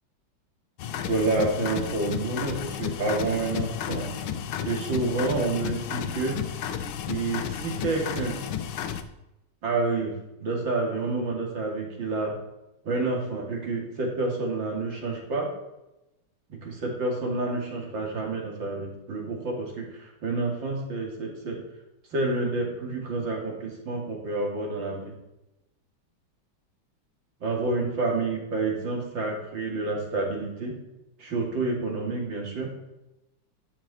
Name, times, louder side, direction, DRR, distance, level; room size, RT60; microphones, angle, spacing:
sound 1, 0.8-9.0, left 9 dB, 80° left, 1.6 m, -32 dB
voice 1, 1.1-4.1 4.6-6.4 7.1-8.4 9.6-10.1 10.4-12.3 12.8-15.5 16.5-21.6 22.1-25.1 27.4-30.7 31.2-32.7, right 3 dB, 65° right, -1 dB, 3.2 m, -29 dB
11.5 x 8.5 x 4.3 m, 0.93 s
omnidirectional pair, 2.2 m